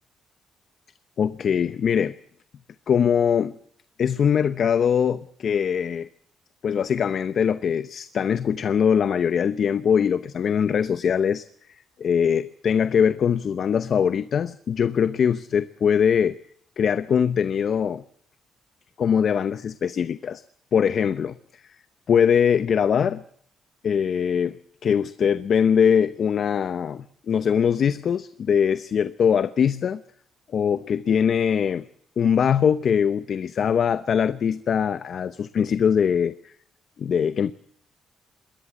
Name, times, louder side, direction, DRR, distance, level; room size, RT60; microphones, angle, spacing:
voice 1, 1.2-2.1 2.9-3.5 4.0-6.1 6.6-11.4 12.0-16.4 16.8-18.0 19.0-20.4 20.7-21.4 22.1-23.2 23.8-24.6 24.8-30.0 30.5-31.8 32.2-36.5 37.0-37.5, left 7 dB, 55° left, 14 dB, 0.8 m, -22 dB
21.5 x 18.5 x 7.3 m, 0.66 s
cardioid pair, 90°, 0 cm